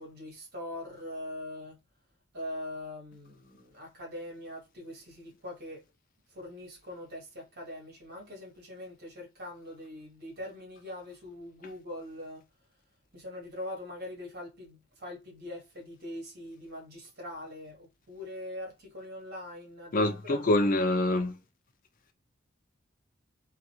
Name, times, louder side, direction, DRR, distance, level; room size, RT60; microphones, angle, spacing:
voice 1, 0.0-1.8 2.3-5.8 6.3-12.5 13.1-20.4, left 1 dB, 55° right, 1.2 m, -42 dB
voice 2, 19.9-21.3, left 2 dB, 45° left, 0.5 m, -25 dB
2.5 x 2.4 x 2.7 m
head